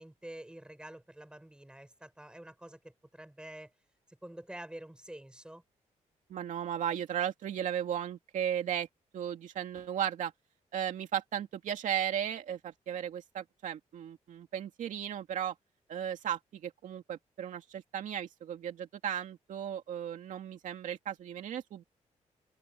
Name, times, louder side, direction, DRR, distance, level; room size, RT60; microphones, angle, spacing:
voice 1, 0.0-3.7 4.1-5.6, right 1 dB, 5° right, 5.7 m, -48 dB
voice 2, 6.3-8.9 9.1-10.3 10.7-15.5 15.9-21.8, right 9 dB, 80° right, 2.4 m, -35 dB
open air
cardioid pair, 125°, 13 cm